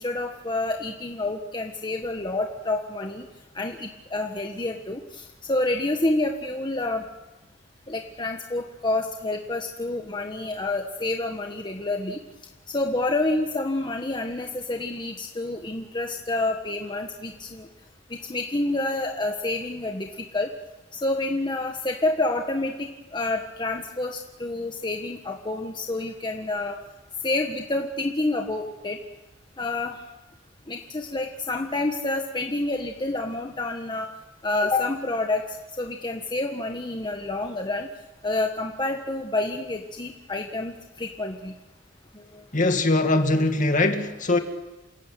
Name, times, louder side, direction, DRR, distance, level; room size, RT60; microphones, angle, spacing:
voice 1, 0.0-3.3 3.5-7.0 7.9-12.2 12.7-17.7 18.1-20.5 20.9-26.8 27.2-29.0 29.6-30.0 30.7-34.1 34.4-35.4 35.8-37.9 38.2-41.5 42.1-42.4, left 2 dB, 25° left, 3 dB, 1.5 m, -28 dB
voice 2, 42.5-44.4, left 2 dB, 40° left, 6 dB, 2.2 m, -21 dB
28.5 x 16.5 x 9.2 m, 1.1 s
head